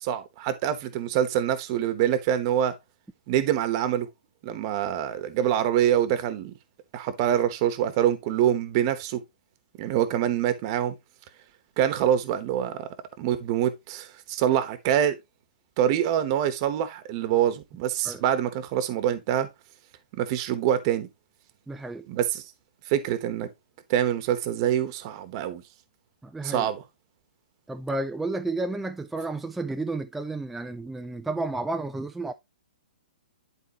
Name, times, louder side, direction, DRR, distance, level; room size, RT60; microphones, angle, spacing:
voice 1, 0.0-2.7 3.3-4.1 4.4-6.5 6.9-9.2 9.8-10.9 11.8-12.9 13.2-15.2 15.8-19.5 20.2-21.1 22.1-22.4 22.9-23.5 23.9-25.6 26.4-26.8, right 10 dB, 30° right, 1.0 m, -25 dB
voice 2, 21.7-22.1 26.2-26.7 27.7-32.3, right 2 dB, 5° right, 0.3 m, -31 dB
11.0 x 4.4 x 2.9 m
hypercardioid pair, 160°, 5 cm